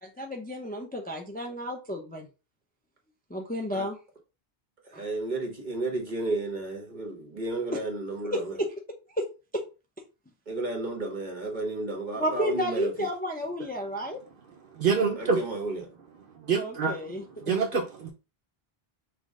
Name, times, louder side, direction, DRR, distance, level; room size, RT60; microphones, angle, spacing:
voice 1, 0.0-2.3 3.3-4.0 4.9-5.0 8.3-8.4 9.1-9.2 9.5-9.6 12.2-14.2 16.5-17.2, equal, 10° left, 0.4 m, -32 dB
voice 2, 4.8-8.6 10.5-13.1 15.2-15.9, right 2 dB, 45° right, 1.3 m, -32 dB
voice 3, 14.8-15.4 16.4-17.0 17.4-18.1, right 5 dB, 65° right, 0.8 m, -26 dB
5.7 x 2.1 x 3.6 m
omnidirectional pair, 1.0 m